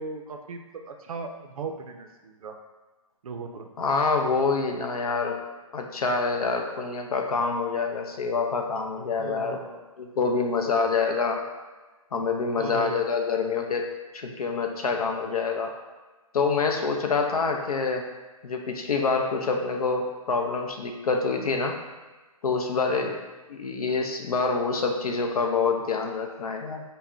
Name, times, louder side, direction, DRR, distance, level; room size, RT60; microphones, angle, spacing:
voice 1, 0.0-2.6 3.2-3.7 9.2-9.8 10.2-10.4 12.6-13.1 22.9-23.1, right 4 dB, 70° right, 4 dB, 0.4 m, -37 dB
voice 2, 3.8-5.4 5.7-9.6 10.0-11.4 12.1-13.9 14.1-15.7 16.3-18.0 18.4-21.8 22.4-23.2 23.5-26.8, left 4 dB, 85° left, 3 dB, 0.5 m, -26 dB
2.2 x 2.1 x 3.5 m, 1.2 s
hypercardioid pair, 140°, 19 cm